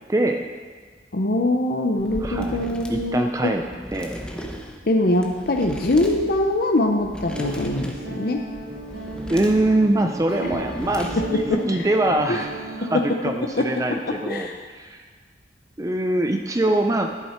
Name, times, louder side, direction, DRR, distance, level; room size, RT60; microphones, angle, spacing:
voice 1, 0.1-0.4 2.2-3.6 3.9-4.2 9.3-15.0 15.8-17.2, right 1 dB, 20° right, 5 dB, 0.4 m, -23 dB
voice 2, 1.1-3.6 4.9-8.4 10.4-10.6 11.2-11.9 12.3-12.4 12.8-13.2 13.6-14.6, left 1 dB, 55° left, 2 dB, 0.7 m, -23 dB
sound 1, 2.0-11.6, equal, 5° left, 0.8 m, -37 dB
Guitar, 7.3-13.0, right 2 dB, 60° right, 2.1 m, -35 dB
10.5 x 9.0 x 4.3 m, 1.5 s
head